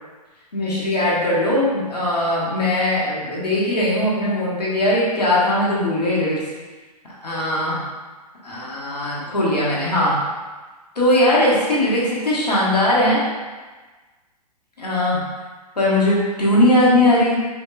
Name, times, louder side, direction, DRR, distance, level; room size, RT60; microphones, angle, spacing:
voice 1, 0.5-6.4 7.0-7.8 8.4-10.2 10.9-13.3 14.8-15.2 15.8-17.4, left 1 dB, 80° left, -6 dB, 1.3 m, -19 dB
4.8 x 3.4 x 2.3 m, 1.3 s
figure-of-eight pair, 115°, 20 cm